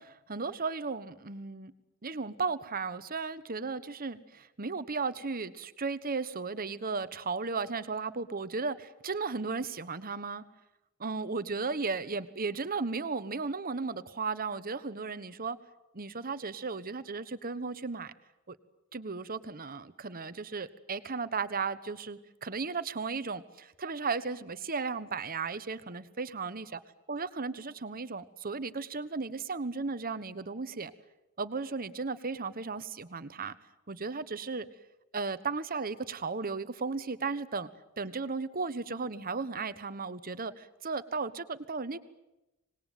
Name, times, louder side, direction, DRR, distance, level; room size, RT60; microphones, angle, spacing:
voice 1, 0.0-1.7 2.0-10.4 11.0-15.6 15.9-18.1 18.5-18.6 18.9-26.8 27.1-30.9 31.4-33.6 33.9-34.7 35.1-37.7 38.0-42.0, right 4 dB, 40° right, 13 dB, 1.2 m, -35 dB
26.0 x 20.0 x 9.3 m, 0.96 s
head